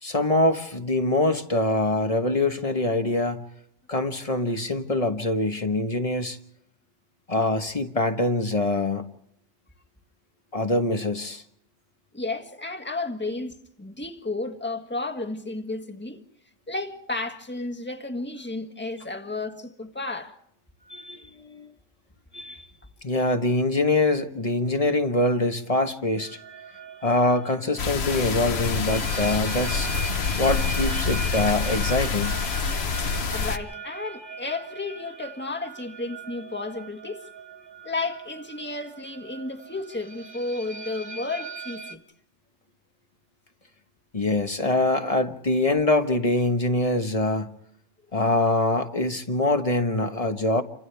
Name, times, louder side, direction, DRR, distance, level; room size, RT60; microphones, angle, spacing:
voice 1, 0.0-3.4 3.9-6.4 7.3-9.0 10.5-11.4 20.9-21.7 22.3-22.6 23.0-26.4 27.0-29.9 30.4-32.4 44.1-47.5 48.1-50.6, left 2 dB, 30° left, 1.3 m, -24 dB
voice 2, 12.1-16.2 16.7-20.3 33.3-37.3 37.8-42.0, left 2 dB, 10° left, 1.6 m, -32 dB
sound 1, 26.2-42.0, right 4 dB, 60° right, 1.9 m, -40 dB
sound 2, 27.8-33.6, left 5 dB, 65° left, 1.3 m, -27 dB
29.5 x 25.5 x 3.4 m
omnidirectional pair, 1.2 m